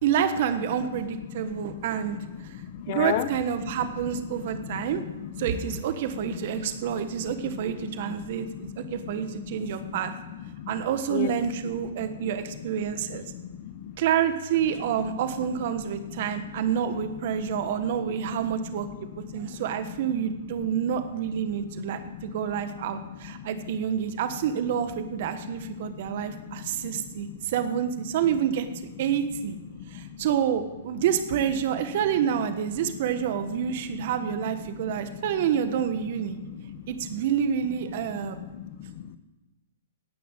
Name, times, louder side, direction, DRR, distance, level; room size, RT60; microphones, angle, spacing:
voice 1, 0.0-2.2 2.9-5.0 5.4-10.1 10.7-13.2 14.0-18.9 19.3-28.7 29.0-29.6 29.9-36.4 36.9-38.4, right 8 dB, 50° right, 9 dB, 1.4 m, -28 dB
voice 2, 1.3-3.3 3.7-3.8 4.1-5.6 6.2-11.3 13.0-14.0 15.8-16.6 16.9-17.6 18.3-18.5 19.3-19.8 20.6-20.7 21.4-22.6 23.0-23.7 25.3-27.4 29.7-30.3 33.1-33.2 33.6-33.7 34.7-35.2 36.4-37.2 38.1-39.2, left 10 dB, 45° left, 12 dB, 0.9 m, -38 dB
17.0 x 6.0 x 7.4 m, 1.1 s
hypercardioid pair, 140°, 0 cm